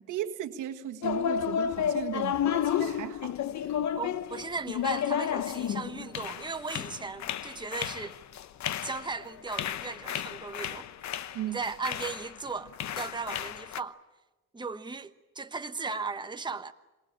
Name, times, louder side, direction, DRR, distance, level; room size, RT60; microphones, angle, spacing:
voice 1, 0.0-3.3 11.3-11.6, right 12 dB, 85° right, 1.7 m, -36 dB
sound 1, 1.0-12.4 12.7-13.8, left 9 dB, 65° left, 1.0 m, -32 dB
voice 2, 3.9-8.2 8.8-10.9 11.4-14.0 14.5-16.7, right 4 dB, 15° right, 1.1 m, -37 dB
26.5 x 21.0 x 8.8 m
cardioid pair, 90°, 30 cm